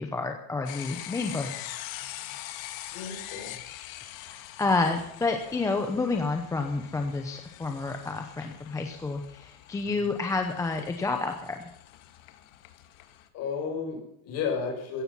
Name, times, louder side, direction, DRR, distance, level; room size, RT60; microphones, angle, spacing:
voice 1, 0.0-1.7 4.2-11.7, left 3 dB, 10° left, 4 dB, 0.8 m, -29 dB
sound 1, 0.7-13.3, left 14 dB, 75° left, 2.1 m, -44 dB
voice 2, 2.9-3.6 9.8-10.1 13.3-15.0, left 5 dB, 35° left, 2 dB, 6.0 m, -33 dB
16.0 x 15.0 x 5.6 m, 0.71 s
cardioid pair, 175°, 41 cm